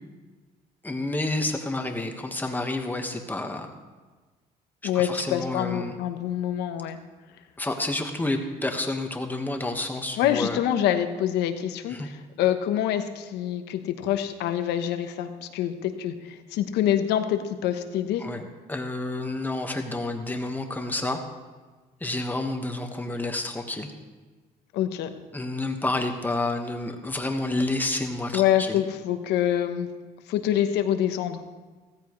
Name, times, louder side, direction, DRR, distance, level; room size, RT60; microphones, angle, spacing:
voice 1, 0.8-3.7 4.8-5.9 7.6-10.6 11.9-12.1 18.2-21.2 22.0-23.9 25.3-28.8, left 2 dB, 10° left, 4 dB, 1.5 m, -29 dB
voice 2, 4.8-7.0 10.2-18.2 24.7-25.1 28.3-29.9 30.3-31.4, left 11 dB, 85° left, 8 dB, 1.1 m, -26 dB
15.5 x 14.0 x 3.2 m, 1.3 s
cardioid pair, 110°, 17 cm